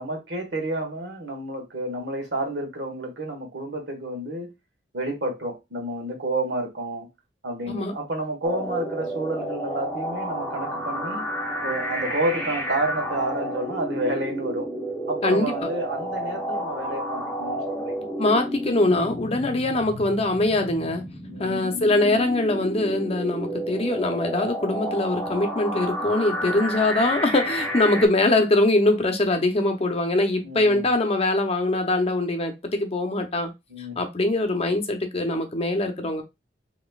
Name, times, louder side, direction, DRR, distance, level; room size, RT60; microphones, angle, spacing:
voice 1, 0.0-4.5 4.9-7.1 7.4-11.2 11.6-14.7 15.1-18.1 21.3-21.8 30.4-30.9 33.7-34.0, right 1 dB, 90° right, 1.5 m, -30 dB
sound 1, 8.4-28.1, equal, 15° left, 1.0 m, -31 dB
voice 2, 15.2-15.7 18.2-21.0 21.4-33.5 33.8-36.2, left 2 dB, 35° left, 0.7 m, -23 dB
5.1 x 2.9 x 2.3 m
head